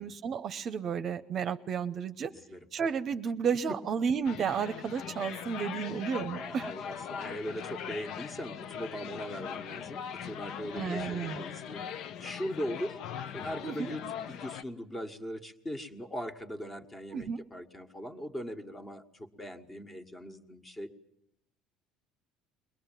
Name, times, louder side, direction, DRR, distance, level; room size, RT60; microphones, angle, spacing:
voice 1, 0.0-2.3 2.7-6.7 10.7-11.4 13.6-13.9 17.1-17.4, right 7 dB, 40° right, 10 dB, 0.8 m, -32 dB
voice 2, 2.3-2.6 3.7-3.8 6.3-11.8 12.2-13.0 13.3-14.0 14.3-20.9, equal, 15° left, 5 dB, 1.7 m, -40 dB
sound 1, 4.3-14.6, left 8 dB, 55° left, 1.0 m, -40 dB
23.0 x 20.0 x 9.1 m, 0.77 s
cardioid pair, 135°, 0 cm